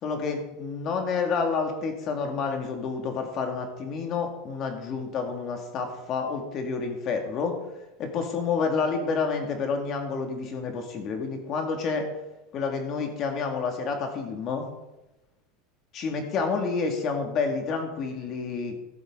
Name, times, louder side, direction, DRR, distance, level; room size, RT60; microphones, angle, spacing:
voice 1, 0.0-7.6 8.0-12.1 12.5-14.7 15.9-18.8, left 5 dB, 45° left, 4 dB, 2.3 m, -29 dB
14.0 x 8.1 x 3.9 m, 0.98 s
supercardioid pair, 120°, 0 cm